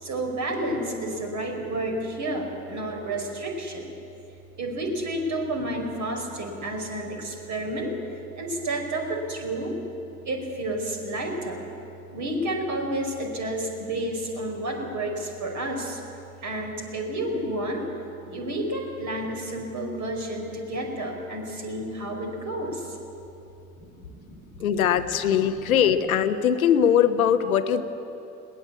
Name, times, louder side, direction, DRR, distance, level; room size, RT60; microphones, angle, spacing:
voice 1, 0.0-3.9 4.6-7.9 8.4-9.7 10.3-11.6 12.1-16.0 16.4-17.9 18.2-22.8 24.1-24.6, right 1 dB, 45° right, 2 dB, 5.4 m, -30 dB
voice 2, 24.6-27.8, left 8 dB, 75° left, 11 dB, 1.0 m, -21 dB
21.5 x 19.0 x 8.5 m, 2.9 s
figure-of-eight pair, 60°, 42 cm